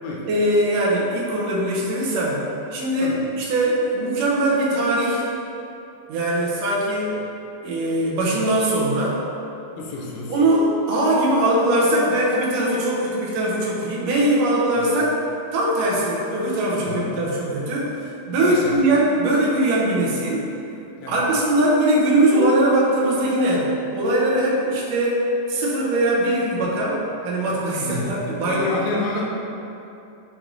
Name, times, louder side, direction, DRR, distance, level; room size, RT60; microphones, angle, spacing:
voice 1, 0.3-2.4 2.7-5.2 6.1-7.2 7.6-9.2 10.3-15.2 15.5-18.0 18.3-20.5 21.1-25.2 25.5-28.8, right 1 dB, 70° right, -5 dB, 1.7 m, -21 dB
voice 2, 9.8-10.4 16.9-17.1 18.4-19.0 21.0-21.2 27.8-29.3, left 2 dB, 85° left, -3 dB, 2.2 m, -29 dB
6.1 x 3.4 x 2.5 m, 2.7 s
omnidirectional pair, 3.5 m